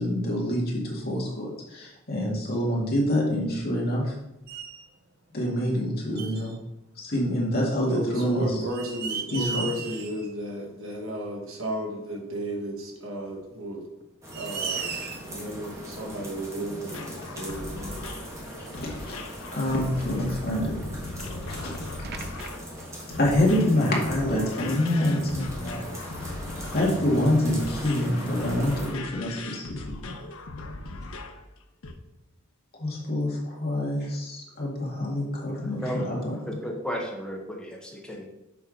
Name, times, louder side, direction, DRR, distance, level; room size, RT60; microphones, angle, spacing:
voice 1, 0.0-4.1 5.3-6.5 7.0-8.6 9.3-9.7 18.8-19.2 19.5-20.8 21.4-21.7 23.2-25.9 26.7-30.1 32.8-36.3, left 1 dB, 45° left, -3 dB, 2.1 m, -26 dB
sound 1, 3.2-4.1 4.5-4.9 6.2-6.6 8.0-8.1 8.6-10.3 10.7-10.8 12.3-12.4 13.4-13.5 14.0-14.1 14.3-15.4 16.7-16.8 17.5-17.6 17.9-18.0 18.7-18.9 20.2-21.1 21.6-21.7 22.0-22.6, right 6 dB, 50° right, 0.7 m, -36 dB
voice 2, 7.9-13.8 14.4-15.0 15.3-17.1 17.4-18.0, right 1 dB, 75° right, 0 dB, 1.8 m, -33 dB
sound 2, 14.2-28.9, equal, 15° right, 1.7 m, -39 dB
sound 3, 16.9-31.4 31.8-31.9, left 2 dB, 80° left, 0.8 m, -39 dB
voice 3, 35.5-38.2, equal, 5° left, -1 dB, 1.1 m, -34 dB
6.9 x 4.6 x 5.1 m, 0.91 s
head